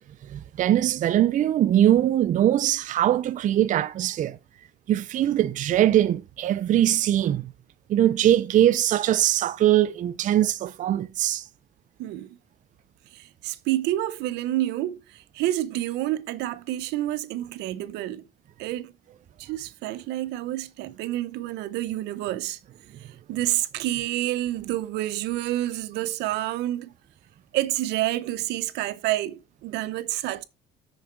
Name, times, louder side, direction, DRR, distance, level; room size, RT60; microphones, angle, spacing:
voice 1, 0.3-4.4 4.9-7.5 7.9-11.5, right 12 dB, 50° right, 0.5 m, -21 dB
voice 2, 12.0-12.4 13.1-18.2 18.6-18.9 19.4-22.6 23.3-26.9 27.5-30.4, right 15 dB, 90° right, 0.8 m, -28 dB
8.5 x 6.4 x 4.6 m
cardioid pair, 110°, 17 cm